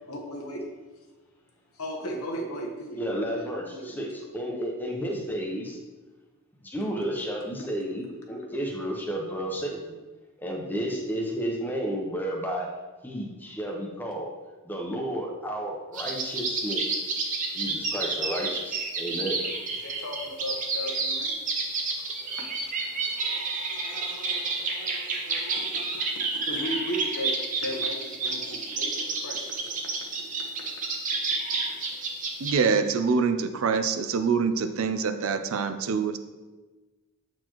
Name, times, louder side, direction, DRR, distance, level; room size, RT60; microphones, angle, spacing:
voice 1, 0.1-0.7 1.7-4.1 19.7-21.3 22.3-22.8 23.0-23.1 24.1-24.6 26.4-29.7, equal, 80° left, 1 dB, 1.0 m, -36 dB
voice 2, 3.0-5.8 6.6-10.0 10.4-12.7 13.0-14.3 14.6-17.0 17.5-19.4, equal, 10° left, 0 dB, 0.8 m, -32 dB
sound 1, 15.9-32.5, right 3 dB, 35° right, 0.7 m, -30 dB
voice 3, 32.4-36.2, right 5 dB, 70° right, 8 dB, 0.4 m, -25 dB
7.6 x 4.4 x 3.0 m, 1.2 s
head